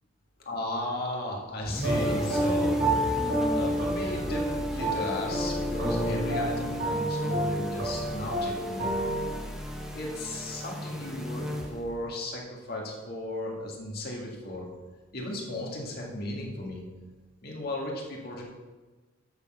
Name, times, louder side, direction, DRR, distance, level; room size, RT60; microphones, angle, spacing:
voice 1, 0.5-2.8 3.5-8.9 9.9-14.7 15.1-16.8 17.4-18.4, left 1 dB, 45° left, -2 dB, 1.9 m, -35 dB
sound 1, 1.6-12.0, equal, 5° right, 1.1 m, -37 dB
sound 2, 1.8-9.3, right 1 dB, 60° right, 3.0 m, -29 dB
8.3 x 6.7 x 6.5 m, 1.3 s
head